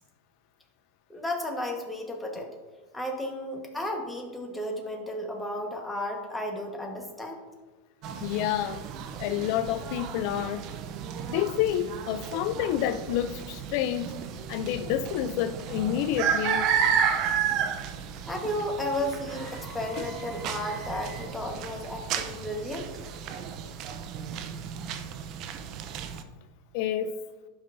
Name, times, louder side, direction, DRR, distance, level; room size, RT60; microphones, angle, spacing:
voice 1, 1.1-2.5 2.9-7.4 18.2-22.9, left 1 dB, 5° left, 1 dB, 1.3 m, -33 dB
sound 1, 8.0-26.2, right 8 dB, 45° right, 0.6 m, -33 dB
voice 2, 8.2-8.8 9.2-10.6 11.3-14.2 14.5-16.7 20.0-20.1 26.7-27.1, left 11 dB, 60° left, 10 dB, 0.4 m, -29 dB
sound 2, 13.3-21.3, right 1 dB, 15° right, 2.3 m, -50 dB
11.5 x 5.4 x 2.6 m, 1.3 s
supercardioid pair, 120°, 0 cm